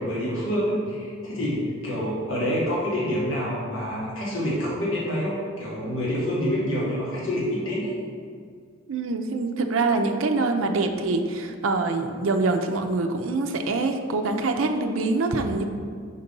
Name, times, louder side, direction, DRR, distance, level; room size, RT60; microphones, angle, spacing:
voice 1, 0.0-7.9, equal, 70° left, -6 dB, 1.5 m, -27 dB
voice 2, 8.9-15.6, right 3 dB, 70° right, 5 dB, 0.5 m, -25 dB
5.2 x 4.0 x 5.3 m, 2.1 s
head